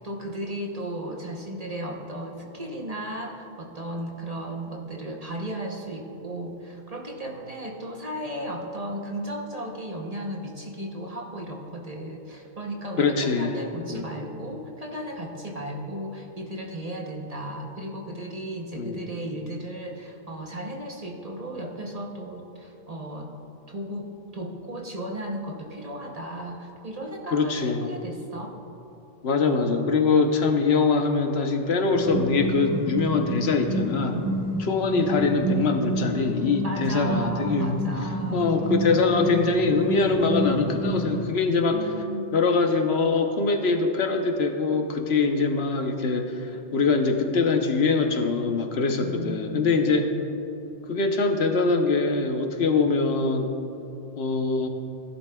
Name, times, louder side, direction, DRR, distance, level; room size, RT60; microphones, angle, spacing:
voice 1, 0.0-23.3 23.7-28.6 36.6-38.5 41.7-42.3 48.9-49.7, right 1 dB, 40° right, 1 dB, 0.8 m, -35 dB
voice 2, 13.0-13.6 13.9-14.1 18.8-19.1 27.3-27.9 29.2-34.2 34.6-37.7 38.3-41.8 42.3-50.1 50.9-53.5 54.2-54.7, left 4 dB, 65° left, 5 dB, 1.0 m, -23 dB
sound 1, 31.9-41.3, right 1 dB, 20° right, 1.5 m, -29 dB
16.5 x 11.0 x 2.2 m, 2.9 s
omnidirectional pair, 1.2 m